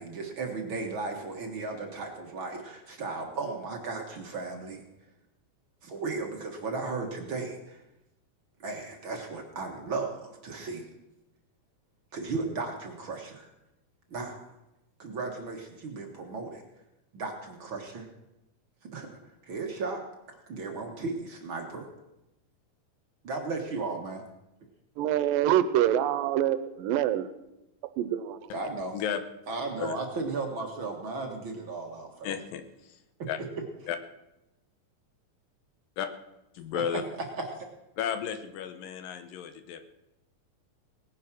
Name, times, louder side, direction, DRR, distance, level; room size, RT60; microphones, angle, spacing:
voice 1, 0.0-4.8 5.8-7.8 8.6-10.9 12.1-13.5 14.1-14.5 15.0-16.6 17.1-18.1 18.9-20.0 20.3-21.9 23.2-24.2 28.5-28.9 29.5-32.3 33.2-33.3 36.7-36.8 37.6-37.7, right 3 dB, 45° right, 2 dB, 1.7 m, -35 dB
voice 2, 25.0-27.3 28.0-28.4, right 11 dB, 85° right, 13 dB, 2.4 m, -25 dB
voice 3, 32.2-33.0 33.3-33.4 33.9-34.0 36.0-36.1 36.5-37.0 38.0-39.8, left 8 dB, 80° left, 9 dB, 2.6 m, -33 dB
18.5 x 9.5 x 6.1 m, 0.93 s
omnidirectional pair, 4.0 m